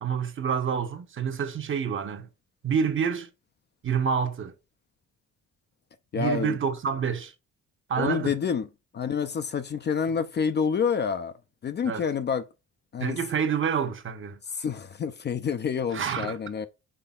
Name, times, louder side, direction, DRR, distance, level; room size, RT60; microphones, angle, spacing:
voice 1, 0.0-2.3 2.6-3.3 3.8-4.5 6.1-7.3 7.9-8.3 11.8-12.1 13.0-14.4 15.9-16.4, right 7 dB, 40° right, 0.8 m, -28 dB
voice 2, 6.1-6.6 8.0-8.7 8.9-12.5 12.9-13.2 14.5-16.7, left 6 dB, 35° left, 0.4 m, -28 dB
5.7 x 3.3 x 2.3 m
cardioid pair, 90°, 30 cm